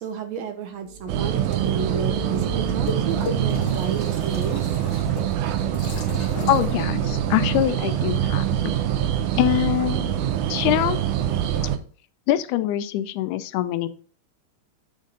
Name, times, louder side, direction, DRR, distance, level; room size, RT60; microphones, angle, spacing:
voice 1, 0.0-4.6, right 6 dB, 70° right, 7 dB, 1.9 m, -32 dB
sound 1, 0.8-6.4, right 3 dB, 40° right, 1.3 m, -35 dB
sound 2, 1.1-11.8, right 11 dB, 85° right, 2.2 m, -24 dB
sound 3, 1.4-7.6, left 3 dB, 50° left, 1.3 m, -36 dB
voice 2, 6.2-8.7 9.4-11.0 12.3-13.9, left 13 dB, 90° left, 12 dB, 2.1 m, -24 dB
7.3 x 5.3 x 3.8 m, 0.43 s
omnidirectional pair, 3.5 m